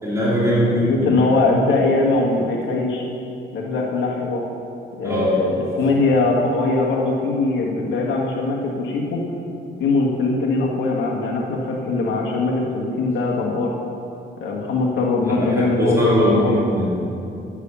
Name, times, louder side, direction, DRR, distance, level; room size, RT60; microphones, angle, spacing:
voice 1, 0.0-1.1 5.0-5.4 15.2-17.0, equal, 15° right, -7 dB, 3.0 m, -20 dB
voice 2, 0.6-3.0 3.5-4.4 5.0-9.2 9.8-13.7 14.4-16.6, left 3 dB, 75° left, -1 dB, 1.8 m, -21 dB
10.0 x 8.2 x 6.9 m, 2.7 s
cardioid pair, 90°, 20 cm